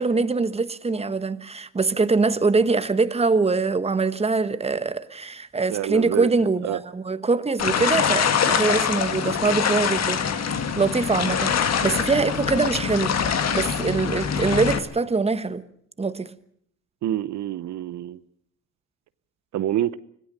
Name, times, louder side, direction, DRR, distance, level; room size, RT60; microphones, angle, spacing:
voice 1, 0.0-13.1 13.5-15.6 16.0-16.3, right 4 dB, 20° right, 1.2 m, -23 dB
voice 2, 5.7-6.3 6.6-6.8 17.0-18.2 19.5-20.0, right 12 dB, 70° right, 0.8 m, -26 dB
sound 1, 7.6-14.8, left 7 dB, 60° left, 2.1 m, -24 dB
26.0 x 17.0 x 6.7 m
cardioid pair, 90°, 30 cm